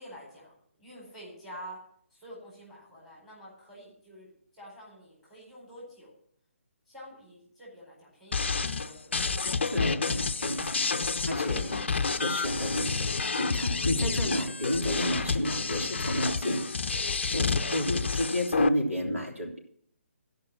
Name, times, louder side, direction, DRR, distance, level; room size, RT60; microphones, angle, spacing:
voice 1, 0.0-1.8 2.1-6.1 6.9-9.2 11.6-12.0 17.4-18.2, equal, ahead, -5 dB, 4.2 m, -48 dB
sound 1, 8.3-18.7, left 4 dB, 55° left, 0.5 m, -29 dB
voice 2, 9.7-11.8 12.1-12.9 13.3-16.7 17.0-19.5, equal, 85° right, -1 dB, 3.2 m, -31 dB
14.0 x 5.4 x 7.3 m, 0.66 s
figure-of-eight pair, 140°, 7 cm